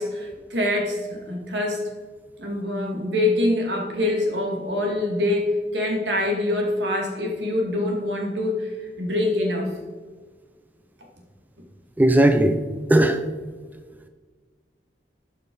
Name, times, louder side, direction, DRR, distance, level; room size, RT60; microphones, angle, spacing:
voice 1, 0.0-1.8 2.4-5.5 5.7-8.7 9.0-9.7, left 1 dB, 80° right, 2.2 m, -25 dB
voice 2, 12.0-12.6 12.9-13.2, right 1 dB, 10° right, 0.4 m, -16 dB
12.0 x 5.8 x 3.9 m
head